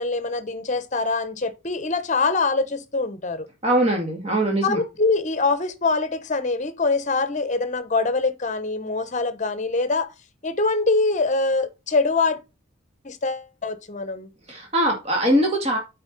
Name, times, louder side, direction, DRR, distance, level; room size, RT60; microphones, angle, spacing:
voice 1, 0.0-3.5 4.6-10.1 10.4-12.4 13.0-14.3, left 3 dB, 35° left, 0.9 m, -24 dB
voice 2, 3.6-4.8 14.5-15.8, right 1 dB, 30° right, 2.1 m, -21 dB
8.8 x 4.5 x 4.0 m
head